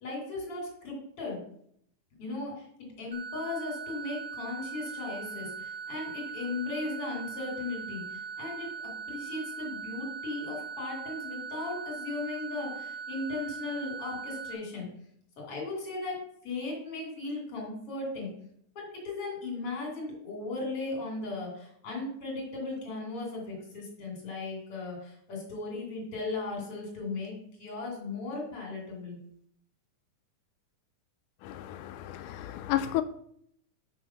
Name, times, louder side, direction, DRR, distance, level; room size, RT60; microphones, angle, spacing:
voice 1, 0.0-1.4 2.2-8.7 9.1-14.9 15.4-18.3 18.8-29.2, left 3 dB, 45° left, 3.5 m, -37 dB
sound 1, 3.1-14.5, right 6 dB, 35° right, 0.8 m, -40 dB
voice 2, 31.4-33.0, left 13 dB, 80° left, 2.1 m, -32 dB
6.4 x 6.2 x 5.8 m
omnidirectional pair, 3.7 m